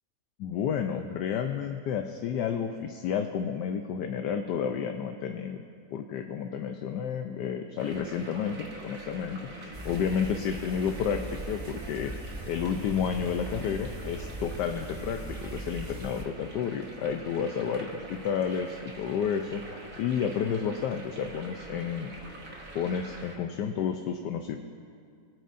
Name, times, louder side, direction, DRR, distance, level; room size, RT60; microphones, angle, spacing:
voice 1, 0.4-5.6 5.9-12.1 12.5-19.7 20.0-22.1 22.7-24.6, left 7 dB, 75° left, 5 dB, 1.2 m, -31 dB
sound 1, 7.8-23.4, right 2 dB, 50° right, 1.8 m, -45 dB
sound 2, 9.7-16.2, right 1 dB, 30° right, 0.4 m, -40 dB
26.5 x 9.2 x 2.6 m, 2.3 s
omnidirectional pair, 2.0 m